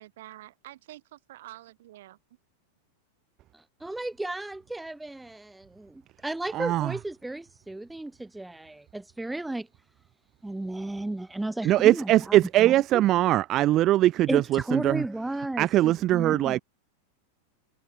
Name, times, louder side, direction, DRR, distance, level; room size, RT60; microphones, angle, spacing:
voice 1, 0.0-2.2, right 15 dB, 55° right, 6.4 m, -47 dB
voice 2, 3.5-9.7 10.4-13.0 14.3-16.6, right 2 dB, 5° right, 0.8 m, -34 dB
voice 3, 6.5-6.9 11.6-15.0 15.6-16.6, right 14 dB, 35° right, 0.4 m, -22 dB
figure-of-eight pair, 90°, 0 cm